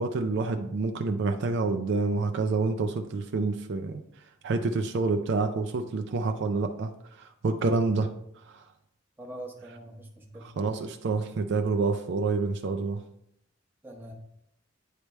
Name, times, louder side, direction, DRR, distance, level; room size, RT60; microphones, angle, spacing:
voice 1, 0.0-4.0 4.4-6.9 7.2-8.1 8.5-8.6 10.4-13.0, right 3 dB, 60° right, 5 dB, 0.4 m, -28 dB
voice 2, 9.2-10.5 13.8-14.1, right 1 dB, 10° right, -1 dB, 0.9 m, -43 dB
9.2 x 3.3 x 3.1 m, 0.76 s
head